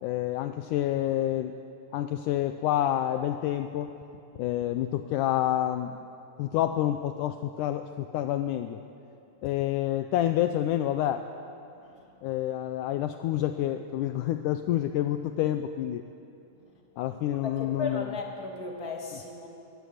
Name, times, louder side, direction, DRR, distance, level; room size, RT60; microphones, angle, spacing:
voice 1, 0.0-1.5 1.9-3.9 4.4-6.0 6.4-8.8 9.4-11.3 12.2-16.0 17.0-18.1, left 12 dB, 80° left, 8 dB, 2.0 m, -28 dB
voice 2, 11.8-12.2 17.4-19.5, left 3 dB, 25° left, 0 dB, 3.0 m, -36 dB
23.0 x 16.5 x 9.4 m, 2.7 s
omnidirectional pair, 4.0 m